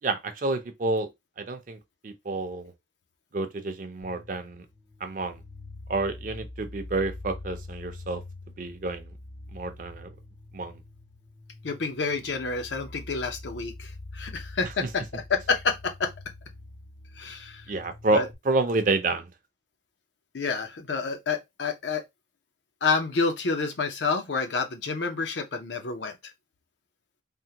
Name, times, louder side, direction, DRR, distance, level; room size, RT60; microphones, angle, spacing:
voice 1, 0.0-1.1 1.4-2.7 3.3-4.6 5.0-5.4 5.9-8.2 8.6-9.2 9.5-10.1 10.5-10.8 14.6-14.9 17.7-19.3, right 3 dB, 45° right, 0.5 m, -29 dB
sound 1, 4.0-18.3, left 2 dB, 25° left, 0.4 m, -44 dB
voice 2, 11.6-16.1 17.2-17.6 18.1-18.3 20.3-22.0 22.8-26.2, left 4 dB, 75° left, 0.6 m, -29 dB
3.5 x 2.1 x 2.8 m
head